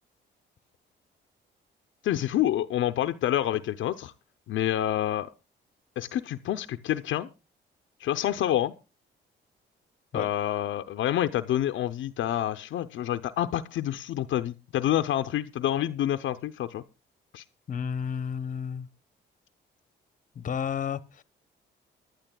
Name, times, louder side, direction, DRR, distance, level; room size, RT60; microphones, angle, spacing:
voice 1, 2.0-4.1 4.5-5.3 6.0-7.3 8.0-8.7 10.1-16.8 17.3-17.4, left 12 dB, 75° left, 0.6 m, -28 dB
voice 2, 17.7-18.9 20.4-21.2, left 7 dB, 40° left, 0.9 m, -32 dB
23.5 x 11.5 x 2.2 m
cardioid pair, 90°, 20 cm